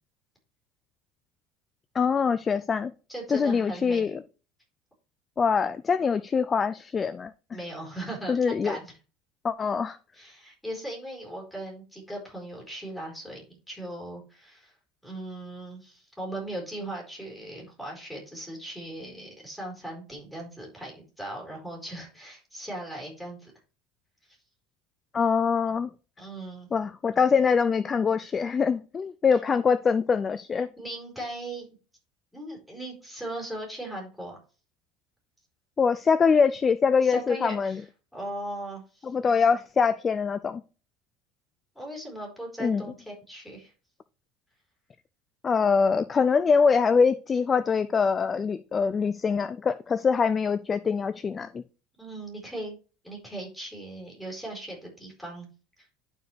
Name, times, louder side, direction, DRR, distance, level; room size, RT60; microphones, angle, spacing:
voice 1, 1.9-2.9 3.3-4.2 5.4-7.3 8.3-8.8 9.4-10.0 25.1-25.9 26.7-30.7 35.8-37.8 39.0-40.6 42.6-42.8 45.4-51.6, left 5 dB, 25° left, 0.3 m, -24 dB
voice 2, 3.1-4.1 7.5-8.9 10.1-14.7 15.0-23.5 24.3-24.4 26.2-26.7 30.6-31.7 32.3-34.4 37.0-37.8 38.1-39.1 41.7-43.7 52.0-52.8 53.0-55.5, right 1 dB, 5° left, 4.1 m, -38 dB
11.5 x 4.7 x 3.2 m
supercardioid pair, 130°, 0 cm